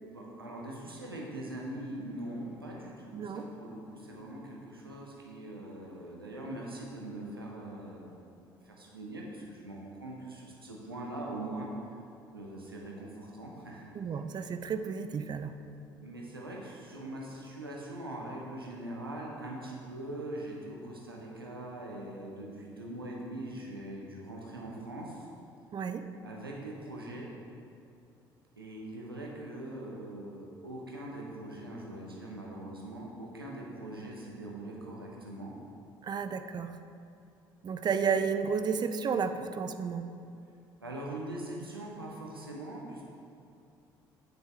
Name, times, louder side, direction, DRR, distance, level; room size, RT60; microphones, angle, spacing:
voice 1, 0.0-11.7 12.3-14.2 16.0-25.3 26.2-27.3 28.5-35.5 40.8-43.0, right 1 dB, 85° right, -2 dB, 1.0 m, -42 dB
voice 2, 3.1-3.5 13.9-15.5 25.7-26.0 36.0-36.7 37.6-40.0, right 6 dB, 35° right, 9 dB, 0.5 m, -32 dB
9.1 x 7.8 x 3.5 m, 2.6 s
figure-of-eight pair, 50°, 12 cm